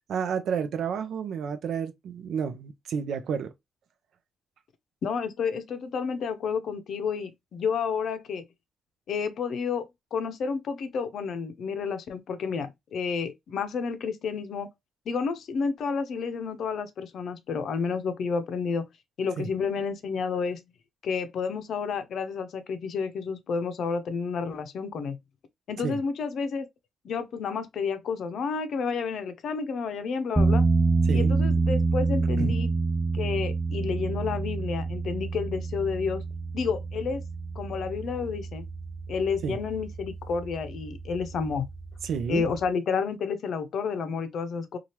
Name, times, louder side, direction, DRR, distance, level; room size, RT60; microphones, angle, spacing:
voice 1, 0.1-3.5 19.4-19.5 25.8-26.0 31.1-31.3 32.4-32.5 39.4-39.6 42.0-42.4, right 7 dB, 70° right, 0.5 m, -30 dB
voice 2, 5.0-8.4 9.1-9.8 10.1-14.7 15.1-18.8 19.2-20.6 21.0-25.2 25.7-26.7 27.0-30.6 31.1-32.7 33.1-36.2 36.5-37.2 37.6-38.6 39.1-41.7 42.3-44.8, left 5 dB, 65° left, 0.6 m, -30 dB
sound 1, 30.4-42.7, right 3 dB, 5° right, 0.5 m, -28 dB
2.8 x 2.4 x 3.1 m
cardioid pair, 90°, 0 cm